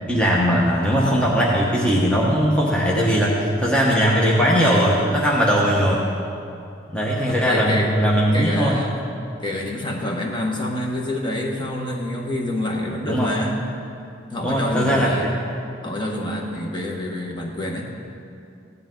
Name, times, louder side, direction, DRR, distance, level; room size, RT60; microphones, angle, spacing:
voice 1, 0.1-6.1 6.9-8.8 13.1-13.3 14.4-15.1, equal, 5° left, -5 dB, 1.1 m, -19 dB
voice 2, 7.3-7.9 8.3-9.0 9.4-13.6 14.3-15.3 15.8-17.9, left 1 dB, 25° left, -1 dB, 1.4 m, -27 dB
16.5 x 10.5 x 3.8 m, 2.5 s
head